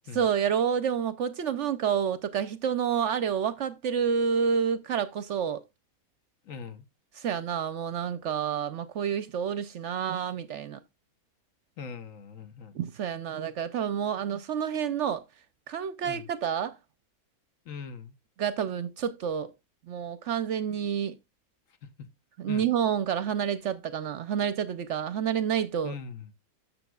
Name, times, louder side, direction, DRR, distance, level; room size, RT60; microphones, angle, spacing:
voice 1, 0.1-5.6 7.2-10.8 12.7-15.2 15.7-16.8 18.4-19.5 19.9-21.2 22.4-25.9, right 8 dB, 65° right, 0.8 m, -29 dB
voice 2, 6.4-6.8 11.8-12.8 16.0-16.3 17.6-18.1 22.0-22.1 22.5-22.7 25.8-26.3, left 6 dB, 65° left, 1.3 m, -41 dB
14.0 x 6.2 x 2.3 m
omnidirectional pair, 1.5 m